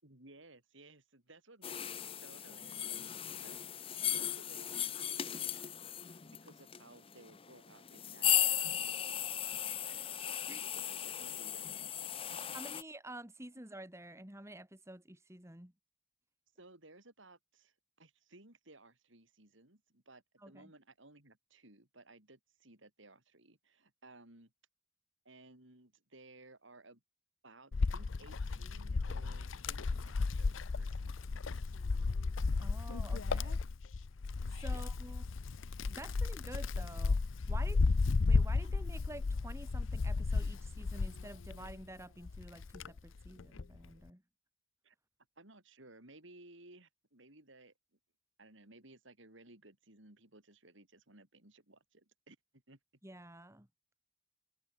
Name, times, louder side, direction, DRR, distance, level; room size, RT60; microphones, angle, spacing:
voice 1, 0.0-1.9 2.2-9.2 9.5-12.6 16.6-24.5 25.2-27.0 27.4-31.4 34.7-34.8 44.8-44.9 45.4-47.7 48.4-52.8, right 2 dB, 70° right, 4.7 m, -59 dB
sound 1, 1.6-12.8, left 10 dB, 25° left, 0.7 m, -37 dB
voice 2, 12.5-15.7 20.4-20.7 32.6-33.6 34.5-35.2 35.9-37.2 37.5-37.8 38.2-44.2 53.0-53.7, right 1 dB, 15° right, 2.6 m, -50 dB
Wind, 27.7-41.8 42.3-43.8, left 4 dB, 75° left, 0.6 m, -34 dB
head